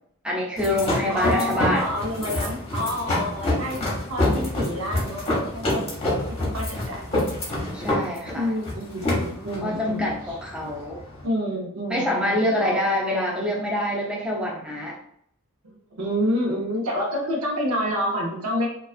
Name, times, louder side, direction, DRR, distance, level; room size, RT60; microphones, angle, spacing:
voice 1, 0.2-1.9 7.7-8.5 9.6-11.0 11.9-15.0, left 1 dB, 5° right, -3 dB, 0.5 m, -26 dB
sound 1, 0.6-11.2, left 1 dB, 25° left, 0.8 m, -27 dB
voice 2, 1.1-6.2 6.5-7.0 8.3-10.4 11.2-13.2 15.6-18.7, equal, 85° right, 0 dB, 0.7 m, -28 dB
2.3 x 2.3 x 2.4 m, 0.69 s
head